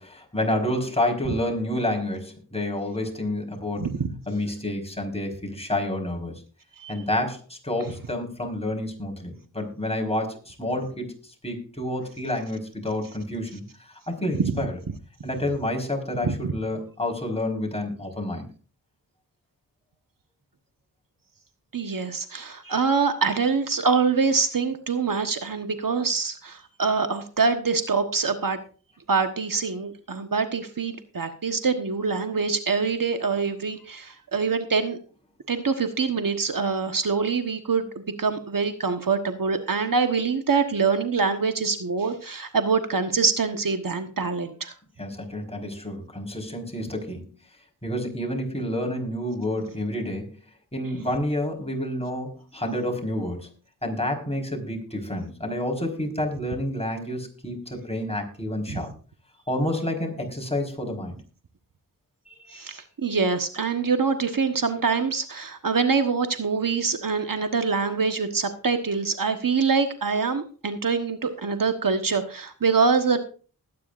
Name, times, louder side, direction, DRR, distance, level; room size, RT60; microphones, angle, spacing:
voice 1, 0.0-3.9 4.3-6.3 6.9-14.8 15.2-18.5 45.0-47.3 47.8-50.4 50.7-53.5 53.8-58.9 59.5-61.2 62.3-62.7, left 1 dB, 15° left, 1 dB, 4.8 m, -29 dB
voice 2, 21.7-28.6 29.1-35.0 35.5-37.9 38.2-44.7 58.7-58.8 62.5-73.2, right 5 dB, 60° right, 7 dB, 1.4 m, -25 dB
20.5 x 9.4 x 2.6 m, 0.37 s
cardioid pair, 50°, 38 cm